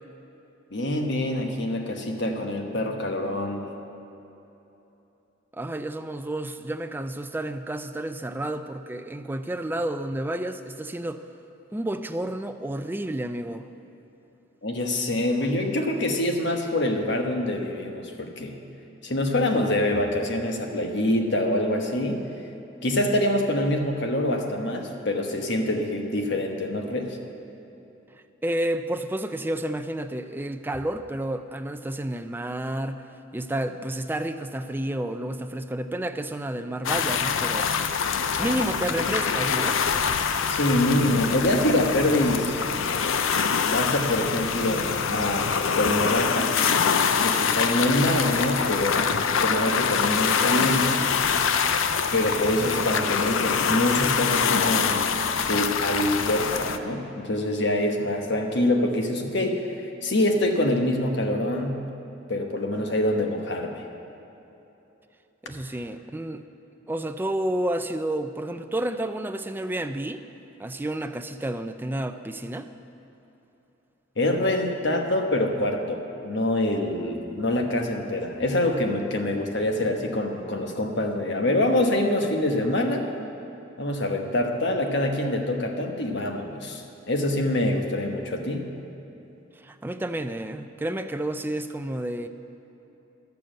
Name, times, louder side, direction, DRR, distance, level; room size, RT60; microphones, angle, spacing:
voice 1, 0.7-3.7 14.6-18.6 19.0-22.2 22.8-27.2 40.5-42.6 43.7-46.5 47.2-51.1 52.1-55.1 55.4-61.9 62.3-63.8 74.2-83.0 83.8-88.7, left 1 dB, 65° left, 3 dB, 1.1 m, -25 dB
voice 2, 5.5-11.2 11.7-13.7 28.4-33.0 33.3-37.7 38.4-39.8 65.4-66.4 66.9-70.2 70.6-72.7 89.6-92.3, right 1 dB, 10° right, 8 dB, 0.4 m, -30 dB
sound 1, 36.8-56.8, left 6 dB, 80° left, 0.5 m, -25 dB
12.0 x 7.0 x 7.6 m, 3.0 s
head